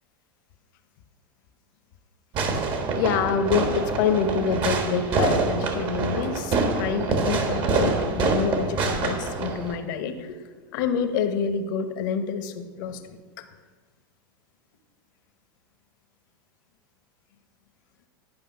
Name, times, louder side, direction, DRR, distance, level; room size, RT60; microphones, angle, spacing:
Fireworks, 2.3-9.8, right 3 dB, 40° right, 1.4 m, -26 dB
voice 1, 3.0-10.4 10.7-13.5, left 6 dB, 60° left, 9 dB, 1.0 m, -27 dB
10.5 x 5.3 x 5.5 m, 1.4 s
hypercardioid pair, 95°, 12 cm